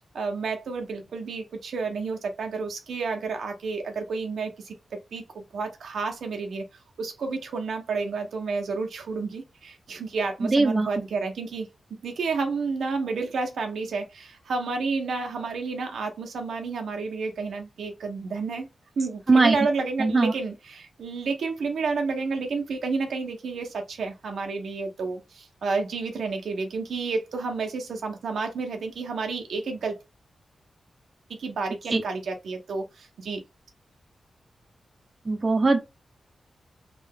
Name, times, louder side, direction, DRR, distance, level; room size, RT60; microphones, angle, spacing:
voice 1, 0.0-6.6 7.0-11.7 12.0-18.7 19.0-30.0 31.4-33.4, right 4 dB, 85° right, 0.9 m, -30 dB
voice 2, 10.4-10.9 19.3-19.6 20.0-20.3 31.9-32.0 35.3-35.8, right 3 dB, 30° right, 0.8 m, -20 dB
3.5 x 2.5 x 3.6 m
wide cardioid pair, 100°, 0 cm